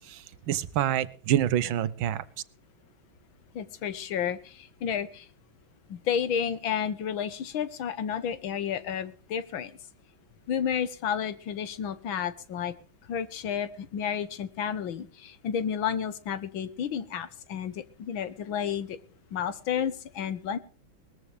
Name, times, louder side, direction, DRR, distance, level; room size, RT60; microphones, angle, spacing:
voice 1, 0.0-2.2, right 11 dB, 85° right, 15 dB, 1.6 m, -27 dB
voice 2, 3.5-5.3 5.9-9.7 10.5-12.7 13.1-19.0 19.3-20.6, left 8 dB, 90° left, 13 dB, 1.9 m, -31 dB
20.5 x 14.0 x 3.4 m, 0.40 s
omnidirectional pair, 2.1 m